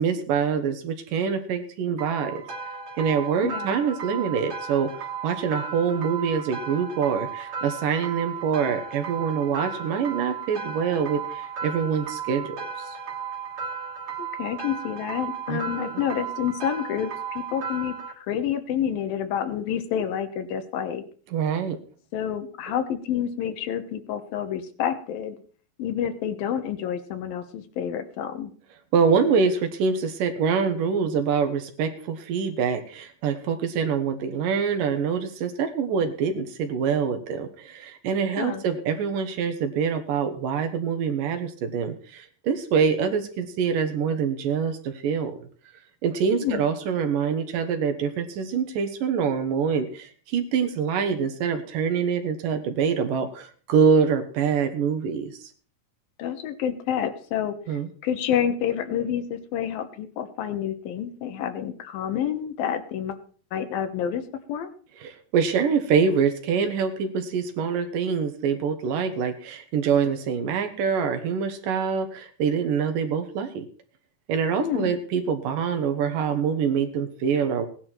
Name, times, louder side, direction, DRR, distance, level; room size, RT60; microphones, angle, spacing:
voice 1, 0.0-2.4 3.0-13.0 15.5-16.0 21.3-21.8 28.9-45.4 46.0-55.5 57.7-57.9 65.0-73.7 74.3-77.7, right 6 dB, 70° right, 7 dB, 2.9 m, -25 dB
sound 1, 2.0-18.1, right 6 dB, 45° right, 2.6 m, -35 dB
voice 2, 3.4-3.8 14.2-21.0 22.1-25.4 25.8-28.5 38.4-38.7 46.3-46.6 56.2-57.6 58.0-63.2 63.5-64.2 64.5-64.7 74.6-74.9, left 9 dB, 80° left, 9 dB, 3.0 m, -28 dB
17.5 x 10.5 x 4.5 m, 0.43 s
omnidirectional pair, 4.1 m